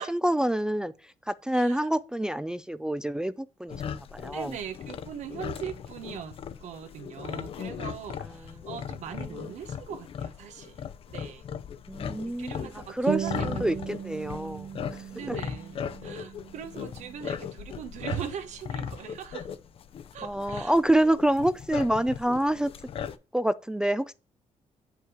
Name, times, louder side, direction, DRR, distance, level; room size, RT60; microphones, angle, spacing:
voice 1, 0.0-4.6 11.9-15.4 20.2-22.7 23.3-24.1, right 1 dB, 5° right, 0.3 m, -27 dB
voice 2, 1.5-1.9 4.3-11.4 12.2-13.6 15.1-19.5 20.1-20.8 21.0-21.2, right 8 dB, 80° right, 1.3 m, -40 dB
sound 1, 3.7-23.2, left 8 dB, 50° left, 0.6 m, -38 dB
sound 2, 13.1-18.1, right 9 dB, 45° right, 0.8 m, -37 dB
8.1 x 5.6 x 4.8 m
cardioid pair, 130°, 12 cm